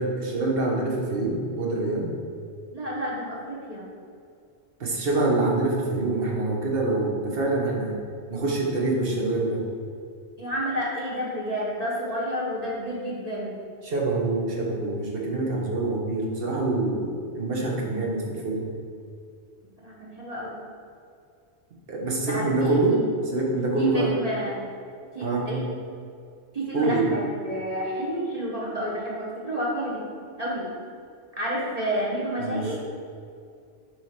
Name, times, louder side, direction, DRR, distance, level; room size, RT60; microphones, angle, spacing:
voice 1, 0.0-2.1 4.8-8.0 8.3-9.6 13.8-18.6 21.9-24.2 25.2-25.5 26.7-27.1 32.4-32.7, right 2 dB, 55° right, -1 dB, 1.3 m, -25 dB
voice 2, 2.7-3.9 10.4-13.5 19.8-20.6 22.3-23.0 23.8-24.6 25.1-25.7 26.5-30.1 30.4-30.7 31.4-32.8, equal, 35° right, -6 dB, 1.2 m, -30 dB
6.9 x 3.3 x 5.9 m, 2.3 s
omnidirectional pair, 1.2 m